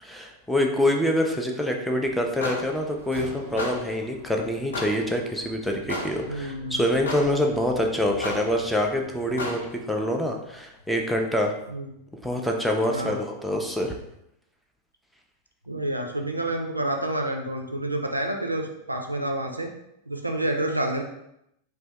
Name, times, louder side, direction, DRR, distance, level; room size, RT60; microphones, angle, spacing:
voice 1, 0.0-11.6 12.1-13.9, left 1 dB, ahead, 1 dB, 0.4 m, -26 dB
Slam, 1.7-2.0 2.4-4.2, equal, 85° left, 1.0 m, -44 dB
sound 1, 2.0-9.7, left 2 dB, 65° left, 0.5 m, -37 dB
voice 2, 6.3-6.8 11.7-11.9 12.8-13.2 15.7-19.7 20.1-21.0, right 1 dB, 85° right, 3 dB, 0.3 m, -29 dB
2.5 x 2.2 x 3.3 m, 0.82 s
figure-of-eight pair, 90°, 0 cm